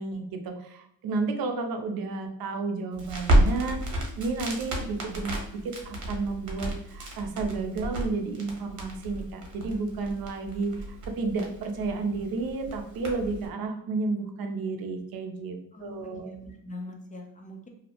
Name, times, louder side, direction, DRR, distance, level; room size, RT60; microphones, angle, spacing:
voice 1, 0.0-5.4 5.6-16.3, right 3 dB, 75° right, 5 dB, 0.5 m, -32 dB
Crackle, 2.9-13.5, right 1 dB, 55° right, 0.9 m, -31 dB
voice 2, 15.7-17.7, left 1 dB, 20° left, 2 dB, 0.5 m, -42 dB
2.7 x 2.0 x 2.8 m, 0.75 s
cardioid pair, 100°, 36 cm